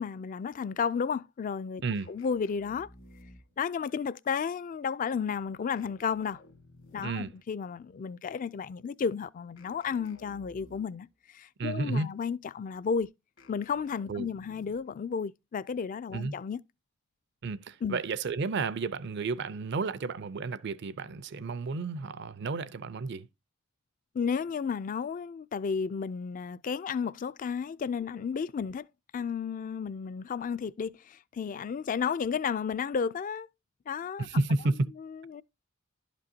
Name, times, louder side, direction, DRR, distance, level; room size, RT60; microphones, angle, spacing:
voice 1, 0.0-1.8 2.1-2.9 3.6-6.4 6.9-13.1 13.5-16.6 17.8-18.0 24.1-28.9 29.1-33.5 33.9-34.3 35.0-35.4, left 6 dB, 40° left, 0.3 m, -33 dB
sound 1, 1.9-3.7 5.8-7.4 9.6-11.1 13.4-15.0, left 2 dB, 65° left, 1.5 m, -56 dB
voice 2, 7.0-7.3 11.6-12.1 14.1-14.3 16.1-16.3 17.4-23.3 34.2-34.9, right 3 dB, 60° right, 0.5 m, -31 dB
11.5 x 5.2 x 2.7 m
head